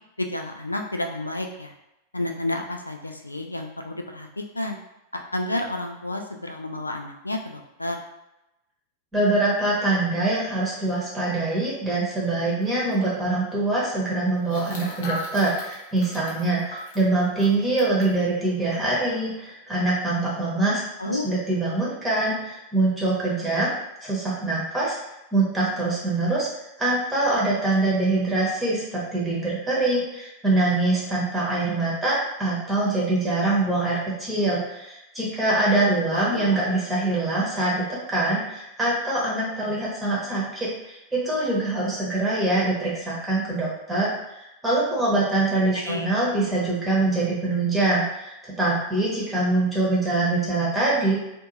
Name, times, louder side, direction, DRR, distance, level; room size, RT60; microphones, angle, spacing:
voice 1, 0.2-1.7 2.1-4.8 5.1-8.0 21.0-21.2 36.1-36.6 45.7-46.1, left 1 dB, 85° left, 4 dB, 0.3 m, -30 dB
voice 2, 9.1-23.7 24.0-25.0 25.3-26.5 26.8-51.2, right 2 dB, 15° right, -6 dB, 0.9 m, -24 dB
sound 1, 12.6-12.7 12.9-13.0 14.4-18.1 18.7-18.8 19.1-19.4, left 2 dB, 55° left, 0.7 m, -38 dB
2.5 x 2.4 x 3.0 m, 0.90 s
figure-of-eight pair, 90°, 0 cm